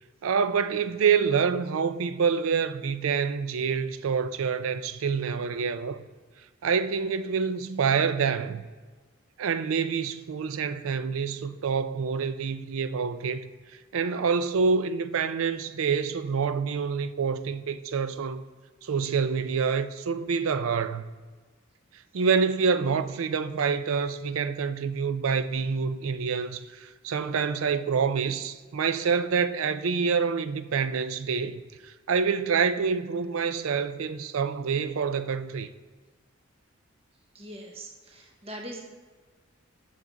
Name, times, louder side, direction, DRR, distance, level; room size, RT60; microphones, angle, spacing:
voice 1, 0.2-6.0 6.6-8.6 9.4-13.5 13.9-18.4 18.8-21.0 21.9-35.7, right 6 dB, 85° right, 0.4 m, -27 dB
voice 2, 37.3-38.8, right 1 dB, 30° right, 0.9 m, -41 dB
8.3 x 6.1 x 4.0 m
head